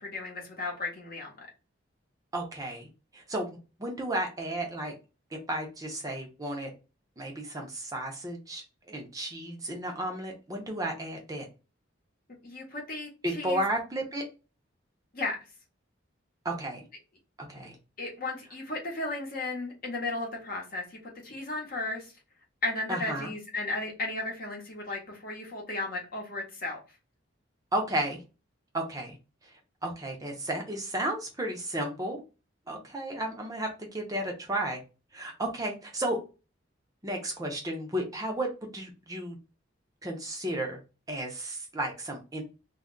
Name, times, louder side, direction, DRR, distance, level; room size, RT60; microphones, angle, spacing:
voice 1, 0.0-1.5 12.4-13.6 15.1-15.4 18.0-22.1 22.6-26.8, left 2 dB, 45° left, 0 dB, 0.8 m, -35 dB
voice 2, 2.3-2.9 3.1-3.5 3.8-4.9 5.5-6.7 7.2-11.5 13.2-14.2 16.4-16.8 17.5-17.8 22.9-23.3 27.7-28.2 28.7-29.2 29.8-32.2 32.7-34.8 35.1-36.2 37.0-39.4 40.0-40.8 41.1-42.4, right 1 dB, 20° right, 1 dB, 0.5 m, -33 dB
2.2 x 2.0 x 3.6 m, 0.30 s
head